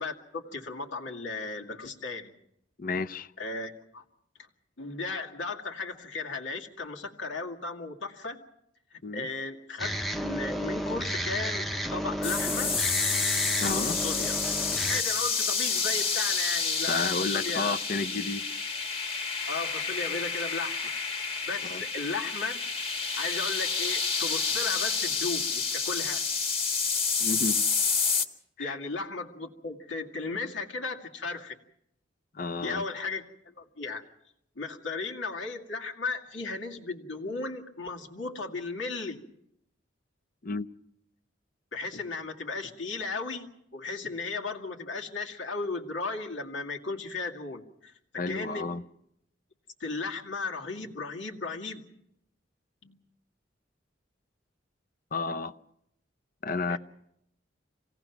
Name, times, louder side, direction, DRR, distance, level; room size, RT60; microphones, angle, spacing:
voice 1, 0.0-2.3 3.4-4.0 4.8-8.4 8.9-9.9 10.2-12.7 13.7-14.3 14.9-17.8 19.5-20.9 21.5-22.6 23.2-26.3 28.6-31.6 32.6-33.2 33.6-34.0 34.6-39.2 41.7-47.9 48.3-48.8 49.8-51.8 52.8-53.0 56.7-56.8, left 3 dB, 90° left, 2.3 m, -35 dB
voice 2, 2.8-3.3 9.0-9.3 13.6-14.0 16.9-18.4 21.6-21.8 27.2-27.6 28.6-28.8 32.3-32.8 40.4-40.7 48.2-48.8 55.1-55.5 56.4-56.8, left 3 dB, 50° left, 0.7 m, -31 dB
sound 1, 9.8-15.0, equal, ahead, 0.7 m, -32 dB
sound 2, 12.2-28.2, left 5 dB, 30° left, 1.8 m, -29 dB
27.0 x 18.0 x 6.0 m
head